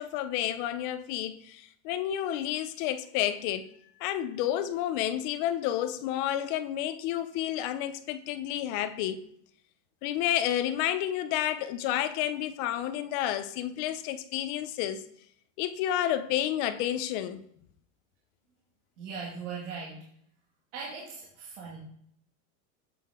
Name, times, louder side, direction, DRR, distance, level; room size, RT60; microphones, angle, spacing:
voice 1, 0.0-3.7 4.0-9.3 10.0-15.1 15.6-17.4, left 11 dB, 45° left, 0.4 m, -30 dB
voice 2, 19.0-20.0 20.7-21.8, right 5 dB, 70° right, 2.0 m, -39 dB
7.5 x 5.7 x 3.5 m
cardioid pair, 170°, 37 cm